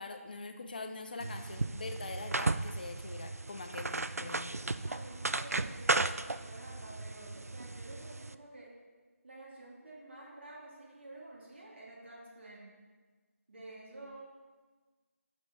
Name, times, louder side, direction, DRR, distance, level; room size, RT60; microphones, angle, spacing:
voice 1, 0.0-4.6, left 3 dB, 35° left, 6 dB, 0.6 m, -43 dB
sound 1, 1.2-8.3, right 2 dB, 75° right, 0.4 m, -35 dB
voice 2, 4.2-8.7 9.2-12.7 13.5-14.2, right 2 dB, 45° right, -5 dB, 2.5 m, -50 dB
11.0 x 4.4 x 4.3 m, 1.4 s
figure-of-eight pair, 160°, 8 cm